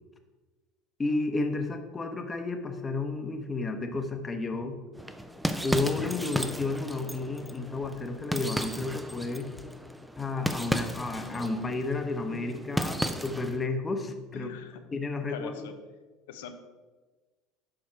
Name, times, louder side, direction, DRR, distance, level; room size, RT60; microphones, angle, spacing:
voice 1, 1.0-4.8 5.6-9.5 10.2-14.5 14.9-15.5, left 3 dB, 20° left, 6 dB, 0.9 m, -32 dB
sound 1, 5.0-13.6, equal, ahead, 0.5 m, -34 dB
voice 2, 14.3-14.8 15.3-15.7 16.3-16.5, left 8 dB, 85° left, 8 dB, 0.7 m, -41 dB
6.7 x 4.9 x 4.5 m, 1.3 s
supercardioid pair, 95°, 0 cm